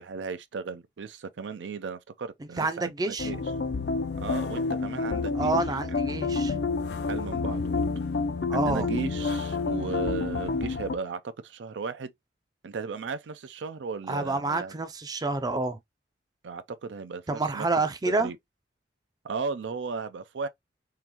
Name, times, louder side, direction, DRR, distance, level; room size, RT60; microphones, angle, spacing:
voice 1, 0.0-3.4 4.2-5.5 5.9-6.0 7.1-7.8 8.5-12.1 12.6-14.7 16.4-17.2 17.5-17.7 18.0-18.4 19.2-20.5, right 5 dB, 85° right, 0.5 m, -35 dB
voice 2, 2.4-3.3 5.3-6.6 8.5-8.9 14.1-15.8 17.3-18.3, right 3 dB, 20° right, 0.4 m, -28 dB
sound 1, 3.2-11.0, left 4 dB, 65° left, 0.5 m, -29 dB
3.8 x 2.9 x 2.9 m
head